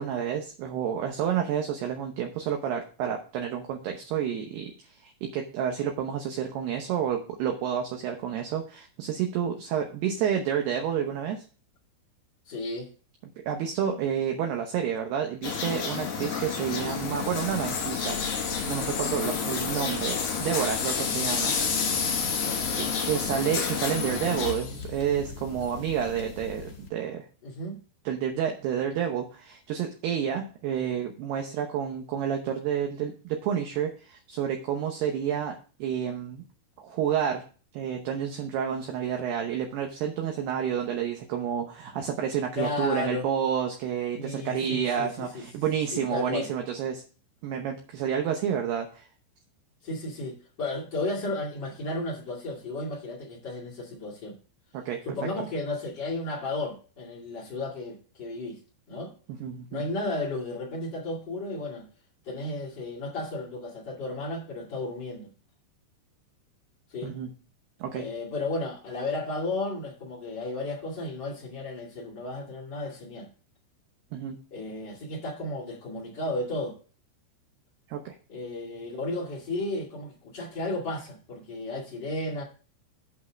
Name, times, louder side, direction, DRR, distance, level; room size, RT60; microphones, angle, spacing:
voice 1, 0.0-4.7 5.0-11.4 13.5-18.2 18.7-21.5 21.8-22.1 22.7-27.2 28.1-36.4 36.8-37.4 37.7-47.0 47.4-49.1 54.7-55.0 59.3-59.8 67.0-67.3 67.8-68.1 74.1-74.4 77.9-78.1, right 8 dB, 70° right, 3 dB, 2.6 m, -30 dB
voice 2, 12.4-12.9 22.4-22.8 27.4-27.8 42.5-43.2 44.2-45.4 45.9-46.5 49.8-54.4 55.0-58.6 58.9-59.1 59.7-61.9 62.2-65.3 66.9-67.2 67.9-73.3 74.5-76.7 78.3-82.4, left 2 dB, 40° left, -5 dB, 1.6 m, -33 dB
sound 1, 15.4-24.5, left 6 dB, 55° left, 3.6 m, -31 dB
sound 2, 16.6-26.9, left 5 dB, 85° left, 1.3 m, -34 dB
8.3 x 5.5 x 6.2 m, 0.38 s
omnidirectional pair, 5.6 m